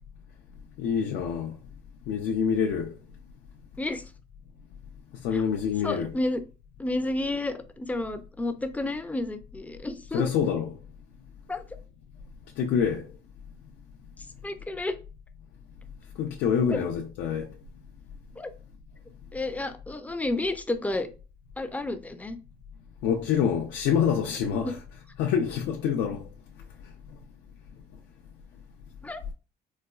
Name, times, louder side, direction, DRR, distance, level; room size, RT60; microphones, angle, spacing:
voice 1, 0.8-1.6 2.1-3.0 5.2-6.2 10.1-10.8 12.6-13.1 16.2-17.5 23.0-24.8 25.2-26.3, left 7 dB, 85° left, 0.4 m, -26 dB
voice 2, 5.8-6.4 6.8-10.2 11.5-11.6 14.4-15.0 16.7-16.8 18.4-18.5 19.3-21.1 21.6-22.4 24.6-24.7 29.0-29.2, left 2 dB, 10° left, 0.3 m, -31 dB
4.0 x 2.2 x 2.3 m
cardioid pair, 110°, 17 cm